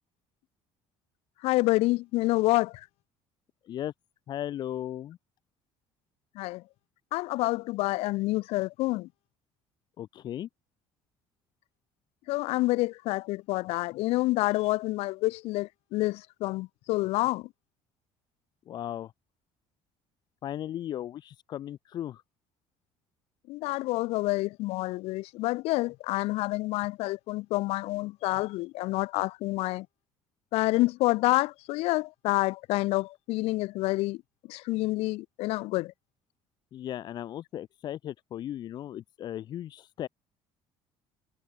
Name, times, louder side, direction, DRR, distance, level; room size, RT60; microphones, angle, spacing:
voice 1, 1.4-2.9 6.3-6.6 7.1-9.1 12.3-17.5 23.5-29.9 30.5-34.2 34.5-35.9, left 20 dB, 75° left, 6.3 m, -28 dB
voice 2, 4.3-5.2 10.0-10.5 18.7-19.1 20.4-22.2 36.7-40.1, left 11 dB, 45° left, 3.1 m, -36 dB
cardioid pair, 170°, 10 cm